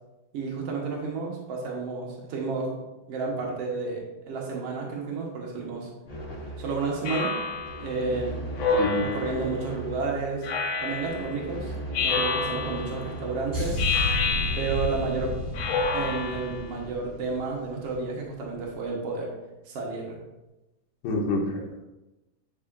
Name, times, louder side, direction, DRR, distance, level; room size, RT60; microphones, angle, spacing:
voice 1, 0.3-2.7 3.1-5.9 6.6-7.3 7.8-8.4 9.0-10.5 10.8-11.7 12.0-13.8 14.5-15.3 15.9-19.3 19.7-20.2, right 4 dB, 80° right, -2 dB, 1.3 m, -31 dB
sound 1, 6.1-14.6, right 1 dB, 25° left, 2.1 m, -39 dB
Speech synthesizer, 7.0-7.8 8.6-9.5 10.4-11.3 11.9-13.0 13.8-15.0 15.5-16.6, left 4 dB, 85° left, 1.5 m, -28 dB
voice 2, 8.7-9.1 21.0-21.8, left 2 dB, 70° left, -1 dB, 2.7 m, -27 dB
sound 2, 13.5-18.1 18.3-18.6, left 1 dB, 20° right, 1.7 m, -32 dB
10.5 x 5.0 x 2.6 m, 1.0 s
omnidirectional pair, 4.6 m